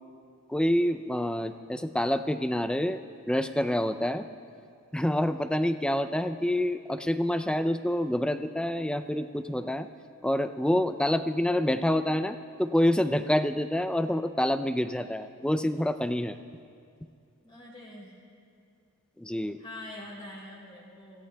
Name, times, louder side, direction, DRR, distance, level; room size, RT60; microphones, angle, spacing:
voice 1, 0.5-4.3 4.9-9.9 10.2-16.4 19.2-19.6, left 1 dB, 5° left, 10 dB, 0.3 m, -27 dB
voice 2, 17.4-18.2 19.6-21.3, left 1 dB, 25° left, -3 dB, 3.0 m, -44 dB
26.5 x 16.5 x 2.2 m, 2.4 s
head